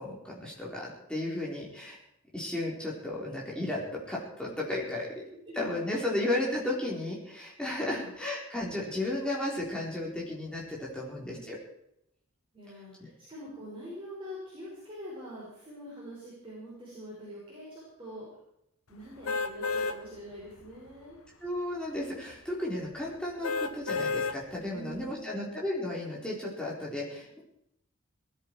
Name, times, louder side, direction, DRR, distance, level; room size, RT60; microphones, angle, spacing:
voice 1, 0.0-2.0 2.3-5.1 5.6-11.6 13.0-13.1 21.4-27.4, left 1 dB, 5° left, -4 dB, 4.0 m, -34 dB
voice 2, 10.9-11.5 12.5-18.3 18.9-21.2 24.7-25.5, equal, 25° right, -8 dB, 5.7 m, -45 dB
sound 1, 19.3-20.0 20.5-20.6 23.4-24.4 24.9-25.0, left 4 dB, 75° left, 1.0 m, -30 dB
19.0 x 13.5 x 4.7 m, 0.77 s
head